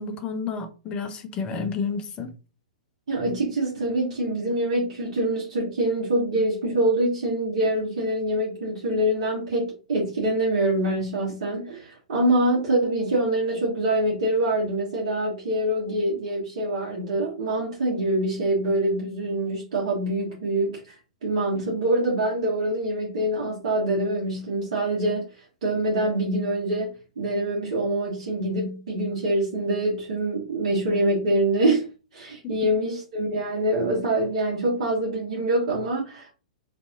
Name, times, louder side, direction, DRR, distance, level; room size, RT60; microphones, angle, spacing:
voice 1, 0.0-2.3, left 5 dB, 25° left, 0.5 m, -30 dB
voice 2, 3.1-20.9 21.2-25.3 25.6-31.9 32.1-36.3, right 1 dB, 55° right, 1.1 m, -25 dB
2.6 x 2.6 x 2.5 m
figure-of-eight pair, 110°, 4 cm